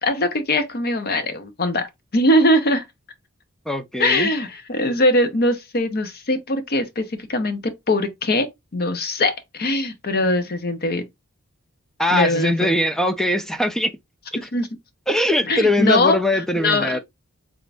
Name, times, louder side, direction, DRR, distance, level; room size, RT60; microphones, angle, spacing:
voice 1, 0.0-1.9 2.1-2.8 4.0-8.5 8.7-11.0 12.1-12.5 14.5-14.7 15.5-16.2 16.6-17.0, left 1 dB, 50° left, 0.7 m, -21 dB
voice 2, 3.7-4.3 12.0-14.0 14.4-14.5 15.1-17.0, left 1 dB, ahead, 0.3 m, -21 dB
3.6 x 2.5 x 3.3 m
head